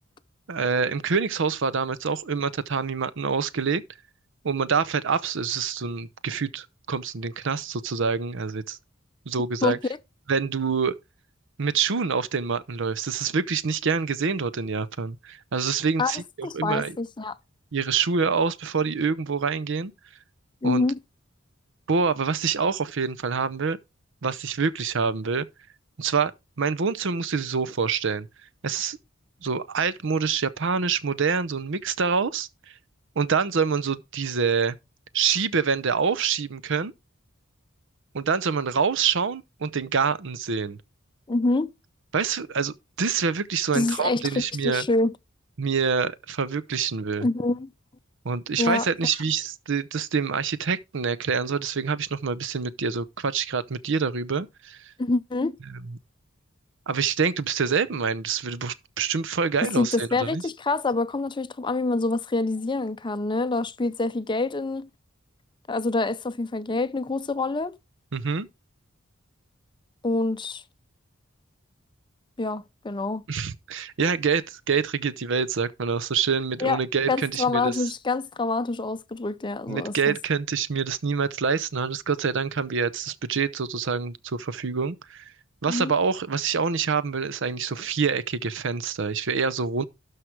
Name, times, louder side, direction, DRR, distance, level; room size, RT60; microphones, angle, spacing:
voice 1, 0.5-3.8 4.4-8.8 9.3-9.8 10.3-10.9 11.6-17.0 17.7-19.9 20.6-20.8 21.9-23.8 24.2-25.5 26.0-26.3 26.6-28.3 28.6-29.0 29.4-32.5 33.2-34.8 35.1-36.9 38.1-40.8 42.1-44.8 45.6-47.3 48.2-54.9 56.9-60.4 68.1-68.5 73.3-77.7 79.7-85.2 85.6-89.8, right 5 dB, 65° right, 0.7 m, -26 dB
voice 2, 16.0-17.4 20.6-21.0 41.3-41.7 43.7-45.1 47.2-47.7 48.6-48.9 55.0-55.6 59.6-64.9 65.7-67.7 70.0-70.6 72.4-73.2 76.6-76.8 77.1-80.2 85.7-85.9, left 3 dB, 25° left, 0.5 m, -26 dB
12.5 x 4.8 x 4.6 m
head